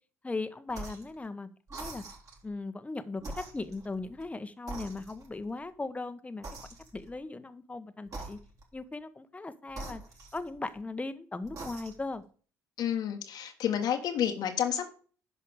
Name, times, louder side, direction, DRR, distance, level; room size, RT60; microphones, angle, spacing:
voice 1, 0.2-2.0 2.4-6.4 6.9-8.4 8.7-10.0 10.3-12.2, left 3 dB, 15° left, 12 dB, 1.1 m, -38 dB
sound 1, 0.7-1.1 1.7-2.5 3.2-4.3 4.7-5.5 6.4-7.2 8.1-8.8 9.7-10.8 11.4-12.2, right 2 dB, 40° right, 3.9 m, -44 dB
voice 2, 12.8-14.9, left 9 dB, 55° left, 4 dB, 1.4 m, -30 dB
10.5 x 5.8 x 4.9 m, 0.41 s
hypercardioid pair, 55°, 8 cm